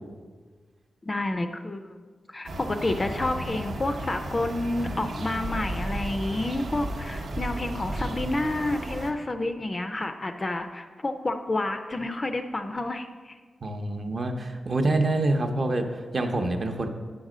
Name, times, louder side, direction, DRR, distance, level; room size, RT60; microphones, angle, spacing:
voice 1, 1.0-2.0 2.3-13.4, left 2 dB, 25° left, 7 dB, 0.4 m, -29 dB
sound 1, 2.4-9.1, right 1 dB, 70° right, 0.8 m, -34 dB
voice 2, 13.6-16.9, right 2 dB, 35° right, 5 dB, 0.7 m, -26 dB
9.6 x 5.4 x 4.9 m, 1.5 s
wide cardioid pair, 175°, 0 cm